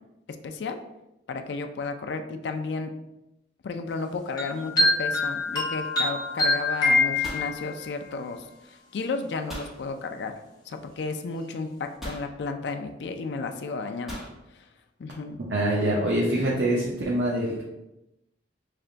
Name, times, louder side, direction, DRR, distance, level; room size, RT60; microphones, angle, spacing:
voice 1, 0.4-0.8 1.3-2.9 3.6-10.3 10.7-14.2 15.0-15.4, left 4 dB, 65° left, 6 dB, 0.4 m, -33 dB
sound 1, 4.4-7.9, left 2 dB, 20° left, 0.9 m, -25 dB
sound 2, 6.2-6.6 6.9-8.5 9.5-9.8 10.9-11.0 12.0-12.4 14.1-14.4, equal, ahead, 1.2 m, -39 dB
voice 2, 15.4-17.6, right 1 dB, 65° right, -4 dB, 0.7 m, -25 dB
3.3 x 2.5 x 3.8 m, 0.91 s
head